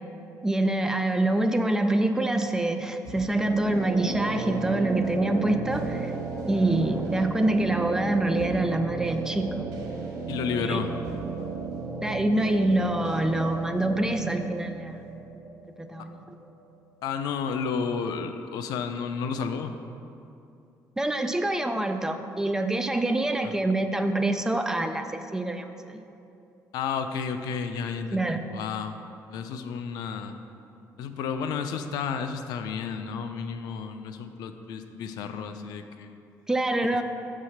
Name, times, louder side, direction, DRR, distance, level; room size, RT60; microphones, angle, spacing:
voice 1, 0.4-6.1 6.5-9.7 10.6-10.8 12.0-15.0 15.8-16.2 21.0-26.0 28.1-28.4 36.5-37.0, right 2 dB, 10° right, 7 dB, 0.3 m, -26 dB
sound 1, 3.0-16.7, right 3 dB, 60° right, 1.3 m, -34 dB
voice 2, 10.3-10.9 17.0-19.8 23.4-23.5 26.7-29.0 29.3-30.3 31.0-36.2, left 6 dB, 90° left, 8 dB, 0.5 m, -32 dB
7.1 x 4.8 x 5.7 m, 2.7 s
cardioid pair, 165°, 7 cm